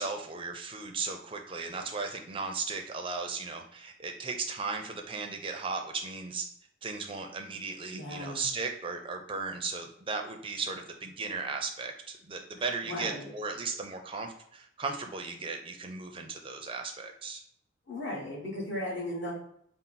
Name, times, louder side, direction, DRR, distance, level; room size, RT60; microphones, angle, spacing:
voice 1, 0.0-6.4 6.8-17.4, right 4 dB, 25° right, 4 dB, 0.4 m, -36 dB
voice 2, 7.9-8.4 12.8-13.3 17.9-19.3, left 1 dB, 60° left, -3 dB, 1.3 m, -36 dB
4.3 x 2.0 x 3.9 m, 0.70 s
head